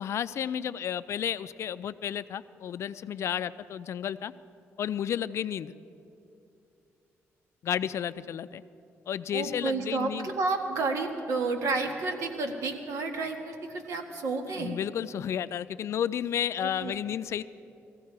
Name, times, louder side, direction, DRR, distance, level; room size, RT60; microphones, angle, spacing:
voice 1, 0.0-4.3 4.8-5.7 7.6-8.6 9.1-10.3 14.5-17.4, left 9 dB, 60° left, 14 dB, 0.4 m, -32 dB
voice 2, 9.3-14.8 16.6-16.9, right 3 dB, 75° right, 4 dB, 1.6 m, -31 dB
19.5 x 15.0 x 4.7 m, 2.7 s
cardioid pair, 115°, 5 cm